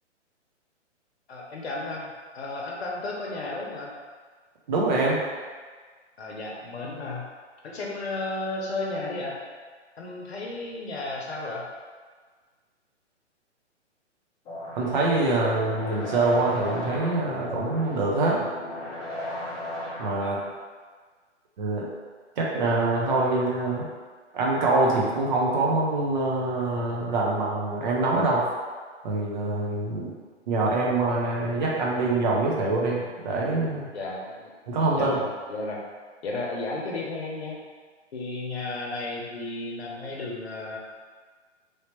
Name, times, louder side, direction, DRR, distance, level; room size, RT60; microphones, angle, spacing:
voice 1, 1.3-3.9 6.2-7.3 7.6-9.3 10.0-11.6 20.2-20.4 33.9-34.5 35.0-35.8 36.2-37.6 38.1-40.8, left 2 dB, 60° left, -2 dB, 0.9 m, -33 dB
voice 2, 4.7-5.2 14.7-18.4 20.0-20.4 21.6-21.9 22.4-23.8 24.3-28.4 29.0-30.1 30.5-33.9 34.7-35.2, right 2 dB, 40° right, -3 dB, 0.8 m, -25 dB
sound 1, 14.4-20.4, left 1 dB, 10° left, 0.7 m, -36 dB
3.2 x 2.8 x 2.9 m, 1.5 s
figure-of-eight pair, 130°, 37 cm